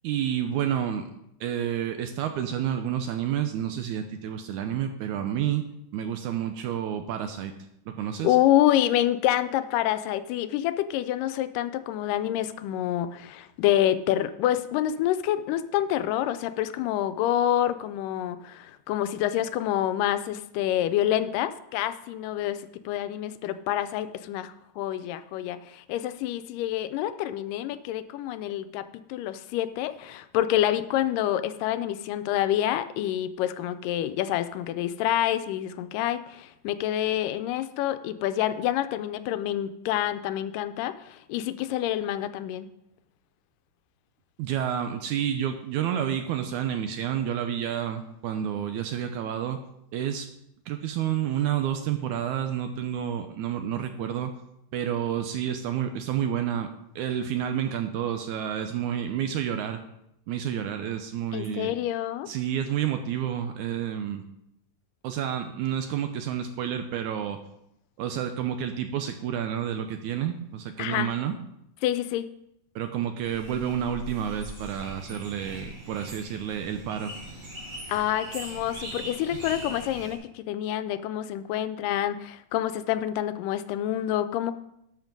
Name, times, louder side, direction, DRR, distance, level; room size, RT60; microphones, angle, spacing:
voice 1, 0.0-1.1 1.4-5.6 5.9-7.5 7.9-8.4 44.4-49.6 49.9-50.3 50.7-54.3 54.7-56.7 57.0-59.8 60.3-61.7 62.3-64.2 65.0-67.4 68.0-71.4 72.8-77.1, right 9 dB, 75° right, 7 dB, 1.8 m, -29 dB
voice 2, 8.2-42.7 61.3-62.3 70.8-71.1 71.8-72.3 77.9-84.5, left 12 dB, 80° left, 11 dB, 2.1 m, -27 dB
sound 1, 73.2-80.1, right 1 dB, 50° right, 5.1 m, -41 dB
12.0 x 5.8 x 5.2 m, 0.80 s
omnidirectional pair, 3.9 m